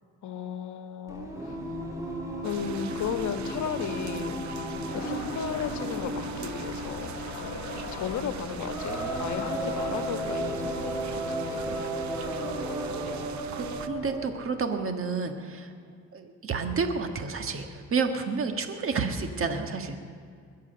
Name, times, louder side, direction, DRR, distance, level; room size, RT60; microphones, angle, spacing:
voice 1, 0.2-1.6 2.4-4.4 4.9-7.1 7.9-10.9 11.3-11.8, left 7 dB, 70° left, 7 dB, 1.3 m, -34 dB
Singing, 1.1-14.3, right 1 dB, 10° right, 3.2 m, -34 dB
sound 1, 2.4-13.9, right 9 dB, 70° right, 0.8 m, -42 dB
sound 2, 4.9-10.9, left 6 dB, 50° left, 1.3 m, -42 dB
voice 2, 12.9-15.7 16.1-20.0, right 4 dB, 45° right, 5 dB, 1.5 m, -30 dB
21.5 x 7.6 x 7.9 m, 2.1 s
cardioid pair, 90°, 30 cm